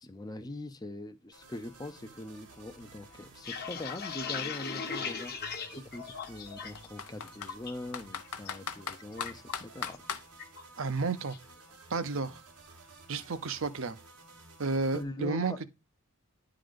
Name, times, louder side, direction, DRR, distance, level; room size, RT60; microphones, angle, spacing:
voice 1, 0.0-10.0 14.9-15.6, left 1 dB, 15° left, 0.5 m, -42 dB
sound 1, 1.3-15.0, right 3 dB, 90° right, 1.8 m, -54 dB
Computer keyboard, 2.0-2.1 2.3-4.3 5.1-5.2 5.5-5.6 6.2-7.5 7.9-10.3, left 7 dB, 80° left, 0.8 m, -39 dB
sound 2, 3.2-6.9 7.2-7.7 8.1-8.5 8.8-10.1 10.4-10.6 11.0-11.4, left 6 dB, 45° left, 1.0 m, -39 dB
voice 2, 10.8-11.4 11.9-12.4 13.1-14.0 14.6-15.7, right 4 dB, 60° right, 0.6 m, -31 dB
10.0 x 3.8 x 5.1 m
head